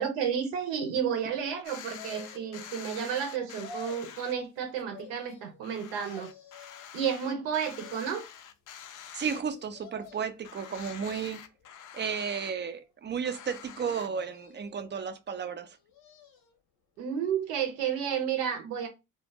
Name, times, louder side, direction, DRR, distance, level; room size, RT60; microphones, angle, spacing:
voice 1, 0.0-6.3 6.9-8.3 17.0-18.9, right 8 dB, 80° right, 0.7 m, -31 dB
sound 1, 1.6-4.3 4.8-4.9 5.3-5.4 5.6-9.8 10.0-10.1 10.4-12.5 13.2-14.1, left 9 dB, 45° left, 0.4 m, -46 dB
sound 2, 1.9-2.7 3.4-4.2 4.9-5.7 6.0-6.9 7.5-8.3 9.5-10.4 11.0-11.7 12.3-13.1 14.1-14.9 15.6-16.6 17.0-17.1, left 4 dB, 70° left, 0.8 m, -50 dB
voice 2, 9.1-11.4 11.9-15.8, right 6 dB, 25° right, 0.3 m, -33 dB
2.0 x 2.0 x 3.2 m
hypercardioid pair, 50°, 44 cm